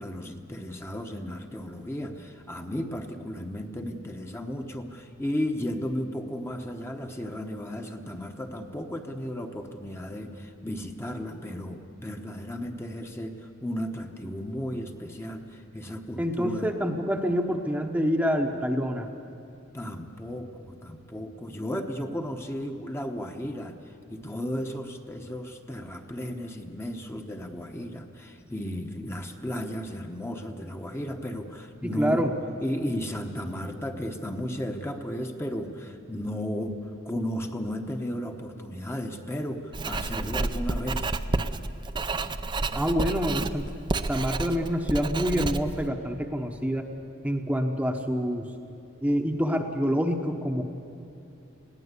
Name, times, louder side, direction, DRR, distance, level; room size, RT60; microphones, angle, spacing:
voice 1, 0.0-16.7 19.7-23.7 24.1-32.2 32.6-36.8 37.0-41.1, equal, 10° left, 4 dB, 1.0 m, -34 dB
voice 2, 16.2-19.1 31.8-32.3 42.7-43.7 44.1-46.9 47.2-48.5 49.0-50.6, equal, 5° right, 3 dB, 0.9 m, -26 dB
Writing, 39.7-45.9, right 2 dB, 20° right, 0.5 m, -30 dB
20.5 x 17.0 x 8.2 m, 2.8 s
head